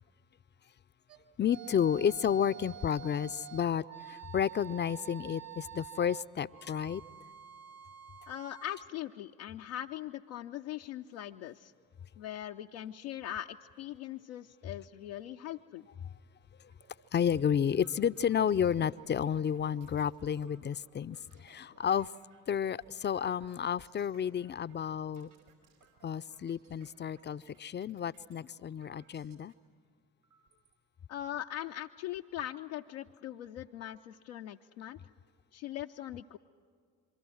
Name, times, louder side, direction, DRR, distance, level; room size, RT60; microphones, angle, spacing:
sound 1, 1.1-8.8, right 10 dB, 55° right, 1.6 m, -48 dB
voice 1, 1.4-7.0 17.1-22.1 22.5-25.3 26.0-29.5, left 8 dB, 25° left, 0.5 m, -31 dB
voice 2, 8.3-11.7 12.2-15.9 31.1-35.0 35.5-36.4, left 12 dB, 75° left, 0.6 m, -41 dB
sound 2, 16.7-29.5 30.2-30.8 31.3-31.4 31.7-32.4, right 6 dB, 75° right, 4.1 m, -66 dB
26.5 x 23.5 x 6.3 m
figure-of-eight pair, 40°, 44 cm